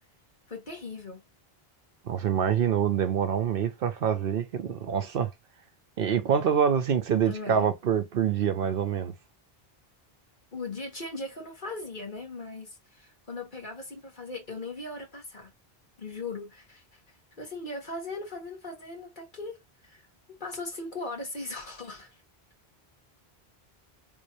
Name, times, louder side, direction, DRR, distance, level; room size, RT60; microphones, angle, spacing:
voice 1, 0.5-1.2 7.3-7.7 10.5-15.5 16.0-17.0 17.4-19.6 19.8-20.1 20.4-22.2, left 3 dB, 50° left, 1.8 m, -38 dB
voice 2, 2.1-5.3 6.0-9.1, right 8 dB, 65° right, 0.8 m, -26 dB
3.5 x 3.1 x 2.6 m
omnidirectional pair, 1.0 m